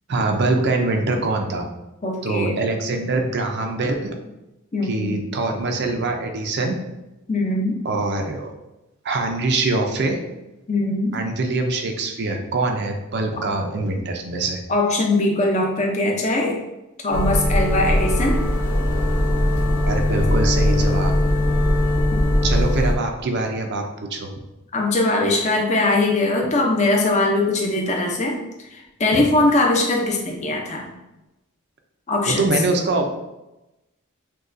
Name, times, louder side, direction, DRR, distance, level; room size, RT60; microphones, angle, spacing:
voice 1, 0.1-1.7 2.2-4.1 4.8-6.8 7.8-8.5 9.0-10.2 11.1-14.6 19.8-21.1 22.4-23.8 24.1-24.3 29.1-29.2 32.3-33.1, right 2 dB, 50° right, 3 dB, 0.5 m, -23 dB
voice 2, 2.0-2.6 4.7-5.2 7.3-7.8 10.7-11.2 14.7-16.6 17.0-18.4 22.1-22.2 24.7-28.4 28.7-30.9 32.1-32.4, left 2 dB, 30° left, -1 dB, 0.6 m, -21 dB
sound 1, 17.1-23.0, left 1 dB, 70° left, 1.0 m, -20 dB
6.2 x 2.3 x 2.6 m, 0.97 s
head